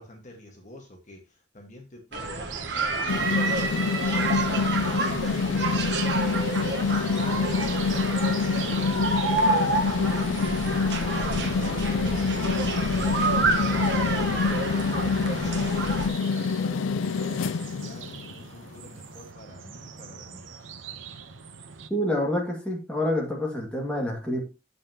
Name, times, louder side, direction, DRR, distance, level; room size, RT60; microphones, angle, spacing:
voice 1, 0.0-6.5 6.9-14.8 15.4-20.7, left 1 dB, 40° left, 2 dB, 1.5 m, -47 dB
sound 1, 2.1-16.1, right 3 dB, 65° right, 1.2 m, -29 dB
sound 2, 2.1-21.9, right 6 dB, 90° right, 0.8 m, -44 dB
sound 3, 3.1-18.4, left 5 dB, 85° left, 0.4 m, -26 dB
voice 2, 21.9-24.4, left 1 dB, 5° left, -2 dB, 1.9 m, -27 dB
8.6 x 7.5 x 2.9 m, 0.29 s
head